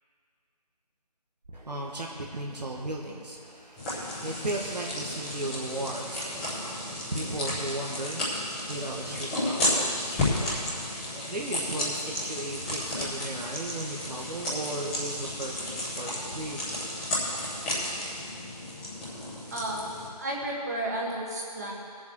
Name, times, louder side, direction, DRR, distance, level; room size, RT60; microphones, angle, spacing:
voice 1, 1.5-16.7, right 2 dB, 90° right, -2 dB, 1.9 m, -36 dB
sound 1, 3.8-20.1, left 1 dB, ahead, 1.0 m, -32 dB
voice 2, 19.5-19.9 20.2-21.7, right 1 dB, 25° right, -3 dB, 1.6 m, -32 dB
20.5 x 7.2 x 4.7 m, 2.3 s
figure-of-eight pair, 175°, 21 cm